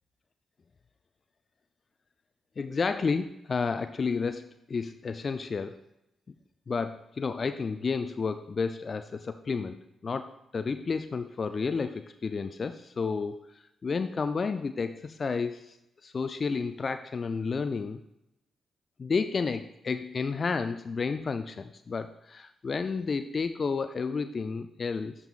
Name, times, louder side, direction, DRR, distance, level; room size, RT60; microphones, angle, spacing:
voice 1, 2.6-4.4 4.7-5.8 6.7-15.8 16.0-18.0 19.0-25.2, left 4 dB, 50° left, 10 dB, 0.3 m, -31 dB
11.0 x 5.5 x 2.4 m, 0.86 s
hypercardioid pair, 45°, 0 cm